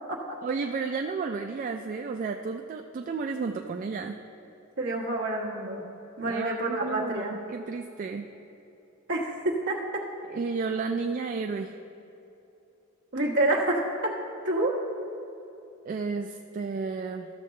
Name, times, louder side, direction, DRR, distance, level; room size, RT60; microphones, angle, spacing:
voice 1, 0.4-4.2 6.2-8.3 10.3-11.7 15.9-17.3, right 4 dB, 40° right, 4 dB, 0.3 m, -32 dB
voice 2, 4.8-5.8 6.2-7.4 9.1-9.8 13.1-13.8 14.4-14.7, right 2 dB, 55° right, -2 dB, 1.3 m, -27 dB
13.5 x 6.6 x 3.2 m, 2.9 s
head